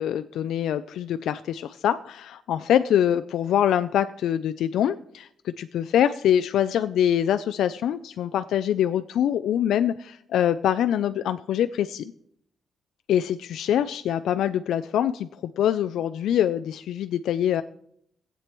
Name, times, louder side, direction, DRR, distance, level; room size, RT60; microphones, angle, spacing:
voice 1, 0.0-12.1 13.1-17.6, left 10 dB, 85° left, 11 dB, 0.3 m, -24 dB
19.0 x 8.2 x 3.0 m, 0.69 s
cardioid pair, 145°, 0 cm